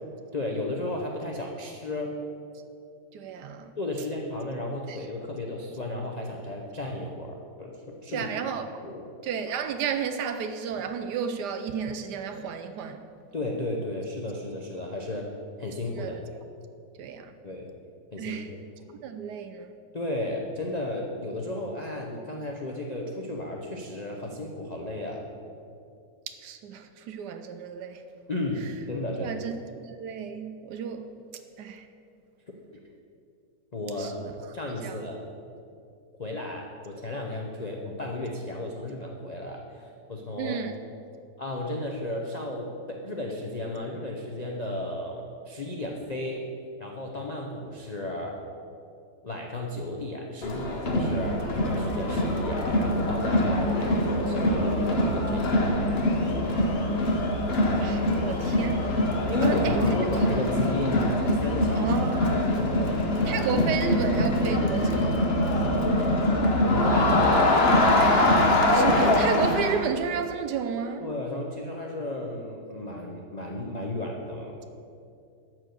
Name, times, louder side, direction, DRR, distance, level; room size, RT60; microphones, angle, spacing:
voice 1, 0.3-2.2 3.8-8.3 8.8-9.0 13.3-15.3 15.6-16.2 17.4-17.7 18.1-18.6 19.9-25.2 28.3-29.4 33.7-34.2 34.5-35.2 36.2-40.6 41.4-46.4 46.8-48.4 49.2-55.8 59.3-61.9 62.2-63.1 66.7-67.7 71.0-74.6, left 1 dB, 70° left, 0.4 m, -34 dB
voice 2, 3.1-3.7 4.9-5.0 8.1-8.7 9.2-13.0 16.0-16.2 17.0-17.3 18.2-18.5 18.9-19.7 26.3-28.0 29.2-29.6 29.8-31.1 31.6-31.8 34.0-34.3 34.8-35.0 40.4-40.7 57.8-59.0 59.4-59.8 61.8-62.8 63.3-65.4 68.7-71.0, right 7 dB, 70° right, 1.0 m, -32 dB
Crowd, 50.4-69.8, left 1 dB, 45° left, 0.9 m, -23 dB
12.0 x 4.6 x 7.8 m
omnidirectional pair, 2.1 m